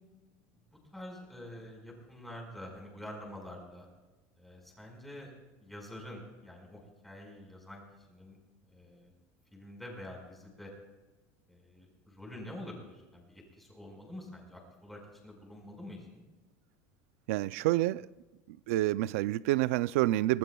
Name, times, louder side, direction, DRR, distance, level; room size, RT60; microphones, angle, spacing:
voice 1, 0.9-3.9 4.4-5.3 5.6-7.8 8.1-8.4 8.7-9.1 9.5-10.7 11.5-16.2, left 1 dB, ahead, 5.0 m, -47 dB
voice 2, 17.3-18.1 18.7-20.4, right 16 dB, 80° right, 0.4 m, -28 dB
26.0 x 19.0 x 2.3 m
cardioid pair, 165°, 7 cm